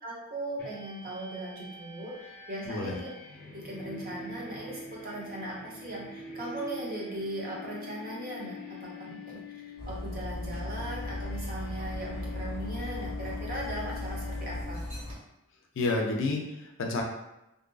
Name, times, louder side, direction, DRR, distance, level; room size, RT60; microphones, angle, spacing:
voice 1, 0.0-3.1 3.5-9.4 9.9-14.8, right 1 dB, 40° right, -4 dB, 0.7 m, -38 dB
sound 1, 0.6-15.1, left 3 dB, 10° left, 1.0 m, -45 dB
Dog, 9.8-15.2, left 1 dB, 80° right, 1.3 m, -37 dB
voice 2, 15.8-17.0, left 2 dB, 55° left, 1 dB, 0.4 m, -30 dB
2.6 x 2.4 x 2.2 m, 0.90 s
head